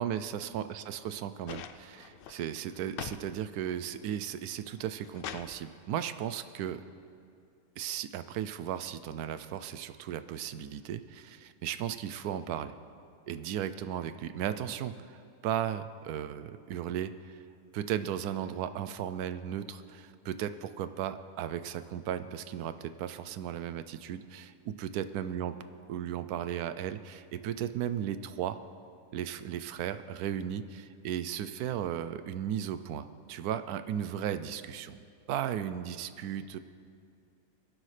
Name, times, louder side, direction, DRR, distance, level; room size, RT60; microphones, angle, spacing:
voice 1, 0.0-6.8 7.8-12.7 13.3-17.4 17.7-25.5 25.9-28.6 29.1-35.0 35.3-36.6, right 10 dB, 85° right, 12 dB, 1.1 m, -36 dB
sound 1, 1.5-3.3 3.6-4.2 4.7-5.5 6.7-6.8, left 8 dB, 85° left, 0.4 m, -43 dB
21.5 x 11.5 x 3.3 m, 2.4 s
omnidirectional pair, 1.6 m